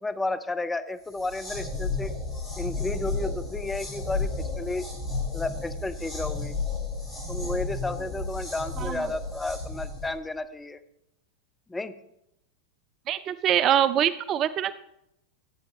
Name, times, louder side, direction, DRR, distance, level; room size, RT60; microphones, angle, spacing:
voice 1, 0.0-2.1 2.6-4.9 5.3-6.5 7.3-10.8 11.7-12.0, left 2 dB, 10° left, 10 dB, 0.6 m, -32 dB
sound 1, 1.1-10.1, left 3 dB, 25° left, 5.1 m, -33 dB
voice 2, 13.1-14.7, right 10 dB, 30° right, 14 dB, 0.4 m, -24 dB
17.0 x 8.3 x 3.2 m, 0.83 s
figure-of-eight pair, 90°, 0 cm